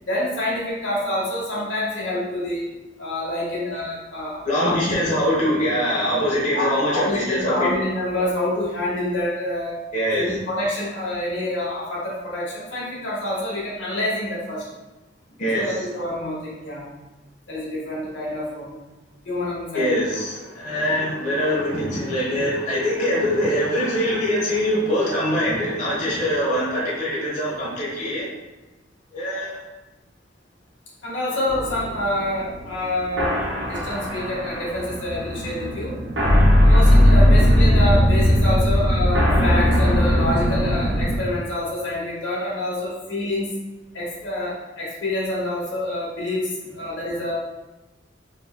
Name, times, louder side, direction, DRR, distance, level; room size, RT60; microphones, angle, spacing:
voice 1, 0.0-2.7 3.0-5.0 6.5-9.8 10.1-14.6 15.5-16.9 17.5-18.8 19.2-20.0 31.0-33.3 33.6-36.0 36.6-43.6 43.9-47.3, left 1 dB, 90° left, -6 dB, 1.4 m, -27 dB
voice 2, 4.4-7.7 9.9-10.3 15.4-15.8 19.7-28.2 29.1-29.6, equal, 45° left, -7 dB, 1.2 m, -23 dB
sound 1, 31.5-41.2, equal, 80° right, 1.0 m, -18 dB
4.2 x 3.9 x 2.2 m, 1.1 s
head